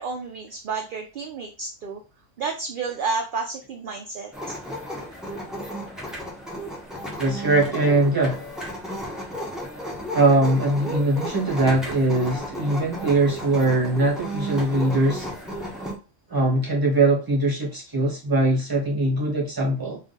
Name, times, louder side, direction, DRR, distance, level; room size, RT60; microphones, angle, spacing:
voice 1, 0.0-2.0 2.4-4.6, right 4 dB, 60° right, 3 dB, 0.6 m, -31 dB
sound 1, 4.3-15.9, equal, ahead, 0.9 m, -34 dB
voice 2, 7.2-8.5 10.1-15.3 16.3-20.0, right 2 dB, 15° right, -2 dB, 1.3 m, -21 dB
3.6 x 2.5 x 3.9 m, 0.32 s
omnidirectional pair, 1.3 m